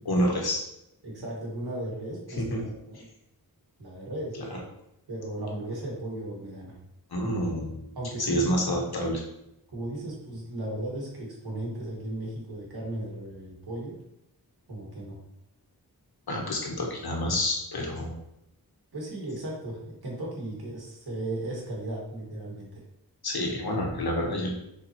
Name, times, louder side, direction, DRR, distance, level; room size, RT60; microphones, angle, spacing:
voice 1, 0.0-0.6 2.3-3.0 4.3-4.6 7.1-7.8 8.2-9.2 16.3-18.2 23.2-24.5, equal, 80° left, 0 dB, 1.5 m, -28 dB
voice 2, 1.0-3.0 3.8-4.3 5.1-6.8 8.0-8.6 9.7-13.9 14.7-15.2 18.9-22.8, right 1 dB, 85° right, -3 dB, 2.3 m, -36 dB
7.1 x 4.6 x 3.1 m, 0.84 s
wide cardioid pair, 85°, 37 cm